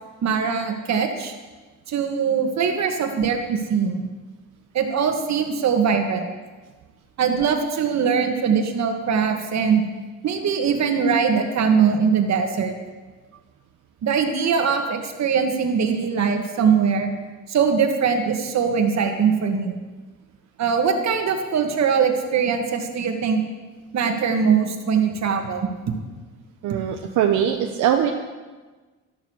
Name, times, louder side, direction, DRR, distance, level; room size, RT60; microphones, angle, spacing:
voice 1, 0.2-1.3 1.9-4.0 4.7-6.3 7.2-9.8 10.2-12.7 14.0-17.1 17.5-19.8 20.6-23.4 23.9-25.7, right 6 dB, 65° right, 5 dB, 2.1 m, -21 dB
voice 2, 26.6-28.1, right 9 dB, 85° right, 3 dB, 1.1 m, -21 dB
13.0 x 12.0 x 6.5 m, 1.3 s
cardioid pair, 90°, 30 cm